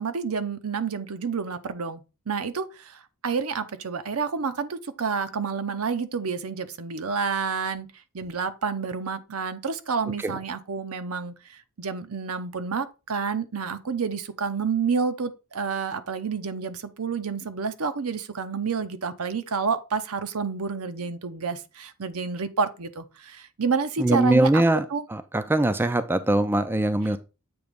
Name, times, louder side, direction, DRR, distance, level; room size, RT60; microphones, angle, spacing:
voice 1, 0.0-7.9 8.1-24.6 24.9-25.1, right 5 dB, 70° right, 0.7 m, -29 dB
voice 2, 24.0-27.2, right 1 dB, 10° right, 0.4 m, -22 dB
7.9 x 3.0 x 5.1 m
head